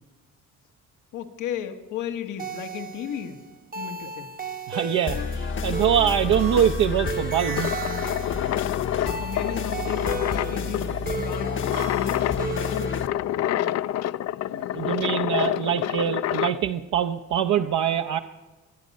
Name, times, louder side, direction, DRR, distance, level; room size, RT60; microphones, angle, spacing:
voice 1, 1.1-3.4 3.7-4.3 9.2-11.6 11.9-13.1 13.3-13.8, left 9 dB, 85° left, 7 dB, 1.3 m, -34 dB
sound 1, 2.4-13.1, right 5 dB, 30° right, 0.8 m, -36 dB
voice 2, 4.7-7.7 14.5-18.2, right 9 dB, 75° right, 5 dB, 0.7 m, -24 dB
sound 2, 5.1-13.1, left 5 dB, 40° left, 0.8 m, -31 dB
sound 3, 7.5-16.6, left 12 dB, 60° left, 0.4 m, -28 dB
24.0 x 9.3 x 5.3 m, 1.2 s
cardioid pair, 90°, 30 cm